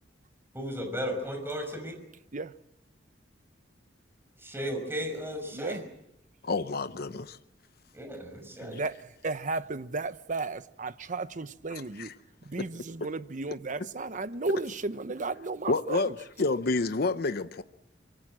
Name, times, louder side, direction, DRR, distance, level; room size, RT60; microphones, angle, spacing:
voice 1, 0.5-1.9 4.4-5.8 7.9-8.8, equal, 15° right, 5.8 m, -35 dB
voice 2, 5.5-5.8 8.6-12.1 12.4-16.1, right 3 dB, 45° right, 0.9 m, -34 dB
voice 3, 6.4-7.4 11.7-12.1 15.7-16.1 16.4-17.6, left 3 dB, 60° left, 0.8 m, -29 dB
25.0 x 22.5 x 7.6 m
head